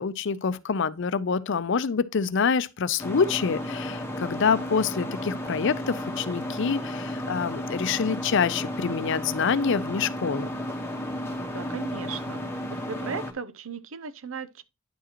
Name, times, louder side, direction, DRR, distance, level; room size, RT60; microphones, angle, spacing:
voice 1, 0.0-10.5, left 5 dB, 65° left, 0.5 m, -26 dB
sound 1, 3.0-13.3, left 1 dB, 10° left, 1.3 m, -33 dB
voice 2, 11.5-12.4 12.7-14.6, right 5 dB, 90° right, 0.7 m, -36 dB
10.0 x 4.8 x 3.0 m
head